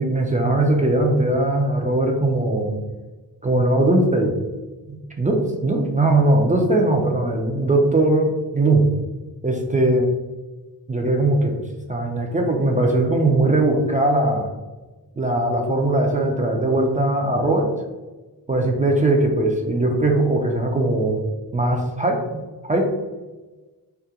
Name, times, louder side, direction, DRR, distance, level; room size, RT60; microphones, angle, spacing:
voice 1, 0.0-2.7 3.4-4.3 4.9-8.9 9.4-10.1 10.9-11.5 11.9-14.5 15.2-17.7 18.5-21.2 21.5-22.9, right 2 dB, 20° right, 1 dB, 0.4 m, -20 dB
2.4 x 2.1 x 2.7 m, 1.2 s
cardioid pair, 70°, 39 cm